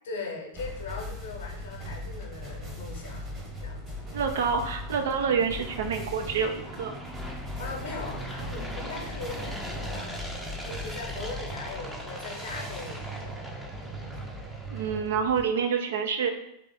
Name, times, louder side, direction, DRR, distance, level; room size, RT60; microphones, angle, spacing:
voice 1, 0.0-3.3 3.6-4.1 7.2-13.4, left 3 dB, 60° left, 2 dB, 0.8 m, -40 dB
sound 1, 0.5-15.4, left 1 dB, 20° right, 1.0 m, -40 dB
sound 2, 3.2-15.3, right 1 dB, 5° right, 0.6 m, -41 dB
voice 2, 4.1-6.9 14.7-16.3, right 6 dB, 60° right, 5 dB, 0.5 m, -27 dB
3.4 x 3.3 x 3.8 m, 0.79 s
figure-of-eight pair, 90°, 0 cm